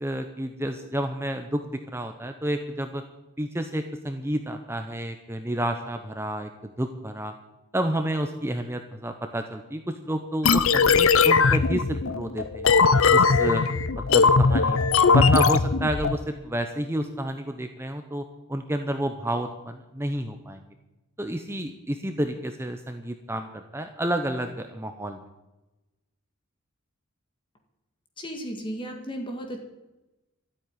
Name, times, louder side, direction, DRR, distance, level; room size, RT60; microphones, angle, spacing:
voice 1, 0.0-3.0 3.4-7.3 7.7-12.7 13.1-13.6 14.1-18.2 18.5-20.6 21.2-25.2, right 1 dB, 10° right, 6 dB, 0.8 m, -30 dB
sound 1, 10.4-16.2, left 4 dB, 70° left, 0.7 m, -19 dB
voice 2, 28.2-29.6, equal, 25° left, 3 dB, 1.9 m, -34 dB
13.0 x 8.8 x 9.7 m, 1.0 s
head